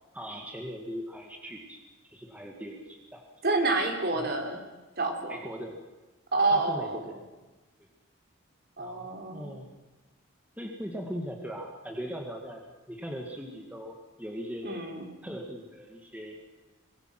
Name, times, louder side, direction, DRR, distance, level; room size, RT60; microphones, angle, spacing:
voice 1, 0.1-3.3 4.1-4.3 5.3-5.8 6.5-7.3 8.8-9.7 10.6-14.7 15.2-16.3, equal, 5° right, 1 dB, 2.2 m, -40 dB
voice 2, 3.4-4.6 5.0-5.4 6.3-7.0 8.8-9.5 14.6-15.1, right 3 dB, 50° right, 2 dB, 3.6 m, -28 dB
24.5 x 22.5 x 6.2 m, 1.2 s
head